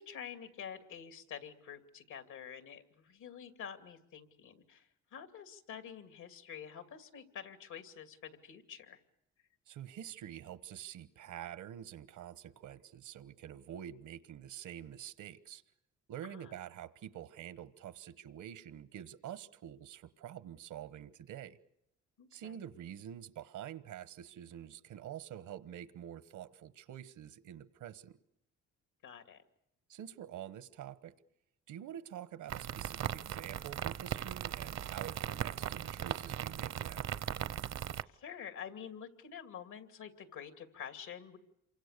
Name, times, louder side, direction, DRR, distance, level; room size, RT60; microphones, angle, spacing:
voice 1, 0.0-9.0 16.2-16.5 22.2-22.6 29.0-29.4 38.0-41.4, left 8 dB, 80° left, 2.7 m, -48 dB
voice 2, 9.7-15.6 16.1-21.6 22.3-28.2 29.9-31.1 31.7-37.1, right 10 dB, 80° right, 1.2 m, -47 dB
sound 1, 32.5-38.0, right 10 dB, 60° right, 0.9 m, -38 dB
28.0 x 24.5 x 6.8 m
cardioid pair, 90°, 30 cm